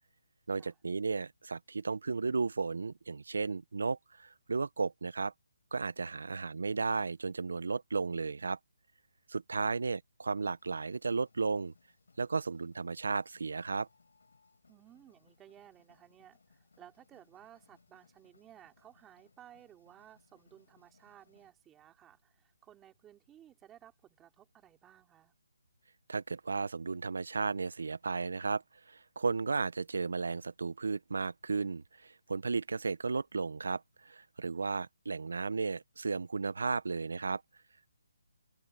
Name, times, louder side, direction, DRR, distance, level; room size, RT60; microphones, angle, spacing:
voice 1, 0.5-5.3 5.7-8.6 9.3-11.7 12.2-13.9 26.1-28.6 28.9-37.4, right 4 dB, 70° right, 0.9 m, -34 dB
sound 1, 10.4-21.5, left 4 dB, 70° left, 7.6 m, -69 dB
voice 2, 14.7-25.3, right 11 dB, 10° right, 3.0 m, -58 dB
open air
hypercardioid pair, 170°, 0 cm